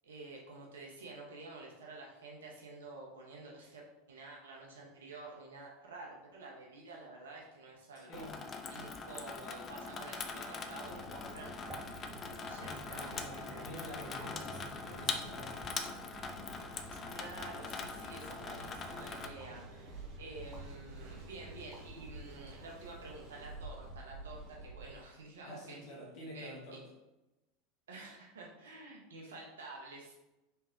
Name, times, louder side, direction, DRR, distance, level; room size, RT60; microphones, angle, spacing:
voice 1, 0.0-3.8 4.1-8.3 8.7-11.5 12.1-13.8 17.1-25.8 26.3-26.8 27.9-30.1, right 3 dB, 70° right, -1 dB, 1.0 m, -50 dB
voice 2, 7.9-8.4 12.6-15.6 25.4-26.9, equal, 50° left, -1 dB, 1.4 m, -48 dB
Water tap faucet / Sink (filling or washing), 8.1-19.3, left 4 dB, 30° left, 0.4 m, -42 dB
Mechanical fan, 10.8-24.9, right 2 dB, 45° right, 1.0 m, -50 dB
sound 1, 11.0-23.2, right 2 dB, 15° right, 1.0 m, -59 dB
3.5 x 3.3 x 3.6 m, 0.98 s
figure-of-eight pair, 80°, 0 cm